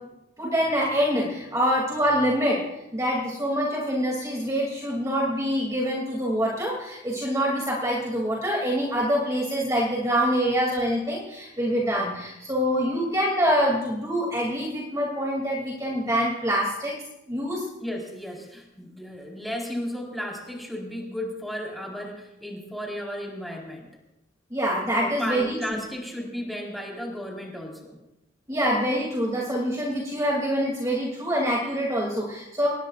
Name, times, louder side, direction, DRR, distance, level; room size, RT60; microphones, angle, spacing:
voice 1, 0.4-2.6 2.9-16.9 17.3-17.6 24.5-25.6 28.5-32.7, equal, 20° right, -3 dB, 2.8 m, -25 dB
voice 2, 17.8-23.9 25.0-28.0, equal, ahead, -2 dB, 4.3 m, -34 dB
25.5 x 20.5 x 2.5 m, 0.91 s
head